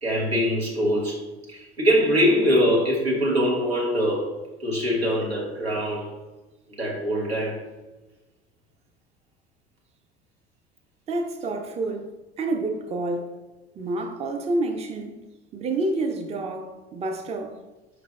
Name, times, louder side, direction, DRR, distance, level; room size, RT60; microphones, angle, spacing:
voice 1, 0.0-1.2 1.5-4.3 4.6-6.1 6.8-7.6, equal, 90° right, 0.9 m, -23 dB
voice 2, 11.1-12.1 12.4-13.3 13.8-15.2 15.5-17.6, right 2 dB, 20° right, 0.5 m, -28 dB
5.0 x 3.2 x 2.4 m
figure-of-eight pair, 65°, 31 cm